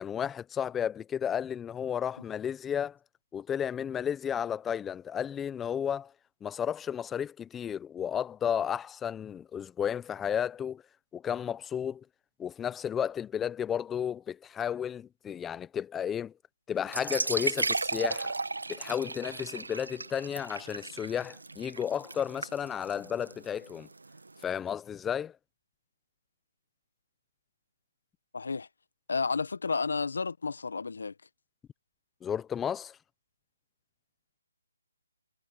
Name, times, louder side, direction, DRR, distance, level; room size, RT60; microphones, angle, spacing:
voice 1, 0.0-3.0 3.3-6.1 6.4-10.8 11.1-12.0 12.4-16.3 16.7-18.3 18.7-23.9 24.4-25.3 32.2-33.0, left 8 dB, 10° left, 1.0 m, -33 dB
sound 1, 16.8-24.4, right 3 dB, 85° right, 1.9 m, -35 dB
voice 2, 28.3-28.7 29.1-31.1, left 4 dB, 70° left, 1.4 m, -31 dB
figure-of-eight pair, 155°, 0 cm